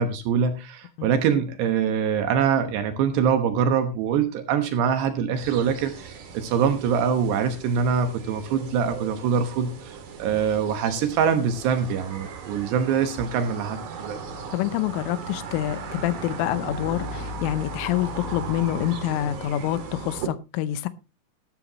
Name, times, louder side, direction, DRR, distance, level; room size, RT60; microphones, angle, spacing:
voice 1, 0.0-14.2, right 7 dB, 70° right, 2.8 m, -24 dB
sound 1, 5.4-20.3, right 4 dB, 50° right, 3.0 m, -37 dB
voice 2, 14.5-20.9, left 13 dB, 85° left, 3.2 m, -27 dB
13.0 x 13.0 x 3.0 m
omnidirectional pair, 5.7 m